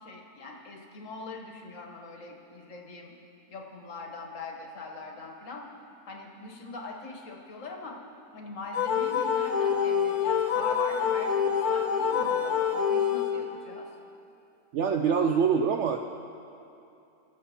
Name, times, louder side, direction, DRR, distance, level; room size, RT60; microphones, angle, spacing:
voice 1, 0.0-3.1 3.5-5.6 6.1-8.0 8.3-13.9, left 3 dB, 55° left, 1 dB, 1.5 m, -41 dB
sound 1, 8.7-13.6, left 7 dB, 75° left, 1.4 m, -26 dB
voice 2, 14.7-16.0, right 6 dB, 70° right, 5 dB, 0.7 m, -24 dB
21.0 x 7.5 x 4.2 m, 2.7 s
omnidirectional pair, 1.6 m